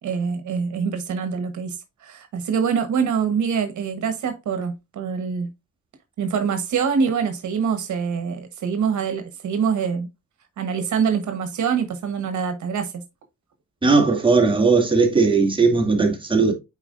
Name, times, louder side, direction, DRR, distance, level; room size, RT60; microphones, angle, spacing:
voice 1, 0.0-5.5 6.2-10.1 10.6-13.0, right 6 dB, 70° right, 1.2 m, -25 dB
voice 2, 13.8-16.5, right 4 dB, 15° right, 2.2 m, -18 dB
8.9 x 4.5 x 2.5 m
cardioid pair, 120°, 30 cm